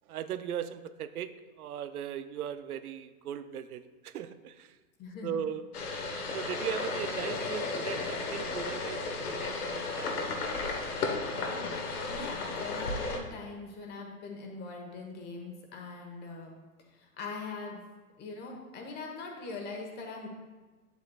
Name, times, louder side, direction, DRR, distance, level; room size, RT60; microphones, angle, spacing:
voice 1, 0.1-4.7 5.2-5.6 6.3-10.4, right 9 dB, 85° right, 12 dB, 0.6 m, -38 dB
voice 2, 5.0-5.4 11.5-16.5 16.9-17.9 18.2-20.3, left 3 dB, 25° left, 2 dB, 1.2 m, -42 dB
sound 1, 5.7-13.2, left 3 dB, 85° left, 1.4 m, -34 dB
9.1 x 8.0 x 2.3 m, 1.3 s
hypercardioid pair, 140°, 43 cm